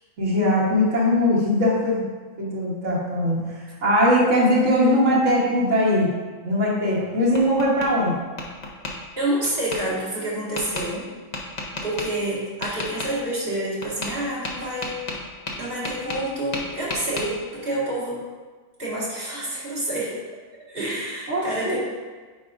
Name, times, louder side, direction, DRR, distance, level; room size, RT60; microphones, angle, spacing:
voice 1, 0.2-2.0 2.4-3.4 3.8-6.1 6.4-8.2 21.3-21.8, left 1 dB, 65° right, -7 dB, 1.7 m, -20 dB
Tap, 6.9-7.9 8.4-8.9 9.7-9.8 10.6-10.9 11.3-12.1 12.6-13.1 13.8-14.2 14.4-16.3 16.5-17.3, left 2 dB, 40° left, 0.8 m, -31 dB
voice 2, 9.2-11.1 11.8-15.0 15.6-18.2 18.8-20.2 20.7-21.8, right 1 dB, 45° right, -8 dB, 2.1 m, -28 dB
9.0 x 4.9 x 2.5 m, 1.4 s
omnidirectional pair, 1.4 m